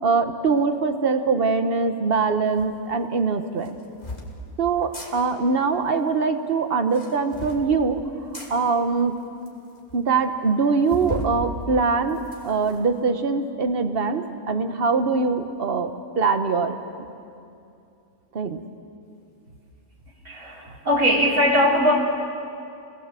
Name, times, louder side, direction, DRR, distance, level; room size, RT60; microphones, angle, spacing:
voice 1, 0.0-3.8 4.6-8.0 8.5-9.1 9.9-16.7 18.3-18.6, right 4 dB, 40° right, 8 dB, 1.3 m, -23 dB
sound 1, 2.6-2.7 3.6-4.3 4.8-5.1 6.8-7.6 8.3-8.5 9.2-9.3 9.5-9.6 9.9-10.0 10.9-11.4 11.8-12.8, left 1 dB, 30° left, 2.9 m, -35 dB
voice 2, 20.2-21.9, equal, 65° right, -4 dB, 4.1 m, -20 dB
29.5 x 19.5 x 7.6 m, 2.6 s
omnidirectional pair, 1.5 m